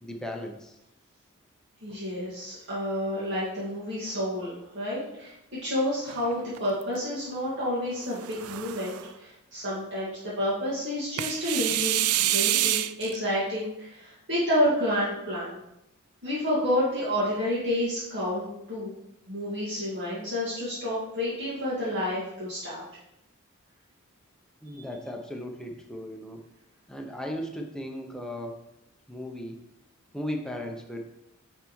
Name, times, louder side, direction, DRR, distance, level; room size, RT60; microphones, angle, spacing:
voice 1, 0.0-0.8 24.6-26.4 26.9-28.6 29.1-29.6 30.1-31.0, left 1 dB, 5° left, 2 dB, 0.6 m, -36 dB
voice 2, 1.8-5.3 5.6-12.1 12.3-15.6 16.2-18.9 19.3-22.8 24.7-24.9, left 1 dB, 55° right, -10 dB, 1.7 m, -29 dB
sound 1, 6.1-7.0 8.0-9.1 11.2-13.2, right 13 dB, 85° right, 0.3 m, -27 dB
9.4 x 3.5 x 3.1 m, 0.86 s
head